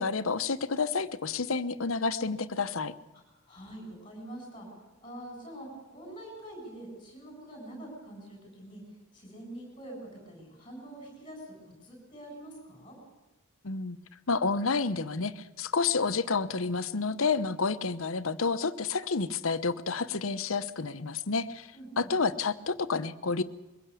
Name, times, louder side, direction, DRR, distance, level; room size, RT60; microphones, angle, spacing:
voice 1, 0.0-2.9 13.6-14.0 14.3-21.7 22.0-23.4, left 4 dB, 70° left, 13 dB, 0.9 m, -29 dB
voice 2, 3.1-4.7 5.0-8.8 9.1-11.5 11.8-13.0 21.7-22.1, right 1 dB, 25° left, 1 dB, 7.9 m, -45 dB
22.5 x 16.0 x 8.4 m, 1.1 s
head